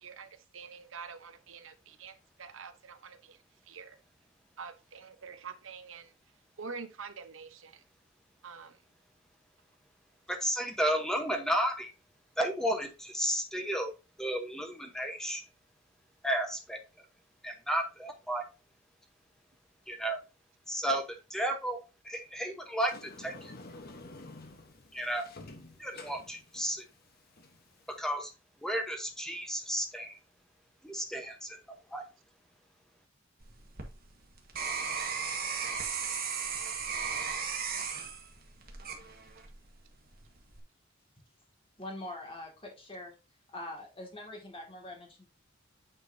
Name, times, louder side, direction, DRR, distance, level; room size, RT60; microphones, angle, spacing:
voice 1, 0.0-2.1 2.4-3.4 3.7-4.0 4.6-6.1 6.6-7.8 8.4-8.8, right 5 dB, 65° right, 10 dB, 0.9 m, -46 dB
voice 2, 10.3-11.9 12.4-13.9 14.2-15.4 16.2-16.8 17.4-18.4 19.9-20.2 20.7-21.0 21.3-21.8 22.0-23.3 24.9-25.3 25.8-26.8 27.9-28.3 28.6-30.2 30.8-31.6 31.9-32.0, equal, 5° left, 4 dB, 1.0 m, -32 dB
Sliding door, 22.8-28.0, left 2 dB, 45° left, 1.1 m, -50 dB
sound 1, 33.4-39.6 40.1-40.6, right 6 dB, 45° right, 1.6 m, -36 dB
voice 3, 41.8-43.1 43.5-45.3, left 1 dB, 25° left, 1 dB, 2.3 m, -43 dB
8.9 x 4.7 x 2.7 m, 0.28 s
head